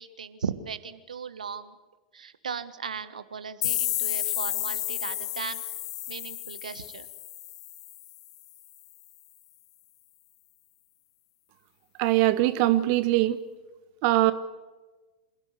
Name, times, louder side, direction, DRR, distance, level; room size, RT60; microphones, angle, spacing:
voice 1, 0.0-1.7 2.1-5.6 6.1-7.1, right 6 dB, 75° right, 13 dB, 1.5 m, -37 dB
sound 1, 3.6-8.3, left 15 dB, 55° left, 1.3 m, -32 dB
voice 2, 12.0-13.4 14.0-14.3, right 16 dB, 45° right, 13 dB, 1.2 m, -22 dB
28.0 x 16.5 x 7.9 m, 1.2 s
figure-of-eight pair, 95°, 4 cm